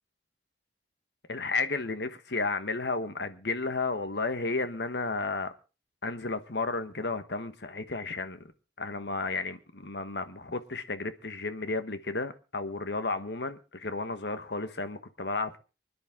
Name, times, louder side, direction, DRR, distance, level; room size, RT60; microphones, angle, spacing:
voice 1, 1.3-5.5 6.0-8.5 8.8-15.6, left 3 dB, 70° left, 1.3 m, -33 dB
25.0 x 10.5 x 3.7 m
head